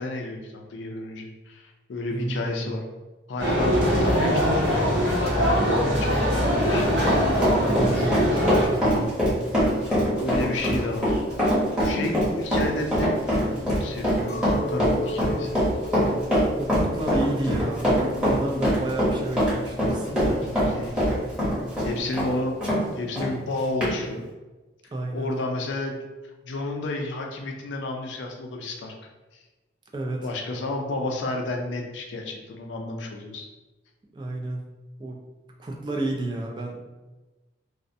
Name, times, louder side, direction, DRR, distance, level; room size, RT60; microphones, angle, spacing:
voice 1, 0.0-2.8 3.3-7.1 9.7-11.3 11.8-13.2 13.8-15.6 17.5-18.3 18.5-18.8 19.8-20.2 20.4-21.0 21.8-22.6 23.0-24.2 25.1-26.1 26.4-28.9 30.2-33.5, left 2 dB, 90° left, 2 dB, 0.4 m, -32 dB
voice 2, 2.1-2.7 7.6-9.7 16.6-20.8 24.9-25.3 29.9-30.3 34.1-34.7 35.0-35.2 35.6-36.8, right 2 dB, 25° right, 0 dB, 0.3 m, -31 dB
sound 1, 3.4-8.7, equal, 75° right, 0.8 m, -22 dB
Run, 6.2-22.8 23.2-23.3 23.8-23.9, equal, 5° right, 0.8 m, -23 dB
Chink clink, 14.3-19.7, left 2 dB, 40° left, 0.6 m, -36 dB
2.4 x 2.1 x 2.6 m, 1.1 s
head